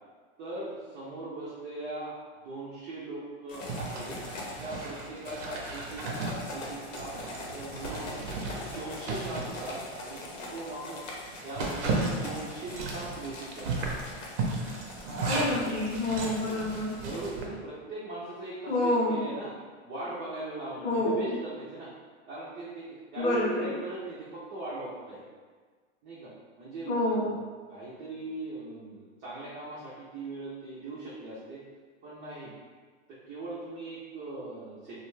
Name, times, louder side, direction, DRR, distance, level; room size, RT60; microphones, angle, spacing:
voice 1, 0.4-2.2 2.4-4.2 4.6-8.1 8.6-10.3 10.5-11.0 11.4-13.9 17.0-19.5 19.8-21.9 22.3-25.2 26.0-26.3 26.6-27.4 27.7-31.6 32.0-32.5 33.1-35.0, right 2 dB, 25° right, -8 dB, 0.4 m, -39 dB
sound 1, 3.5-17.3, left 2 dB, 85° left, 0.8 m, -43 dB
Zipper (clothing), 3.7-10.3 10.7-10.8 11.2-17.5, right 3 dB, 65° right, 0.6 m, -35 dB
voice 2, 15.2-17.0 18.7-19.2 20.8-21.3 23.2-23.7 26.9-27.3, left 1 dB, 20° left, -5 dB, 0.6 m, -28 dB
2.3 x 2.2 x 3.0 m, 1.5 s
hypercardioid pair, 130°, 37 cm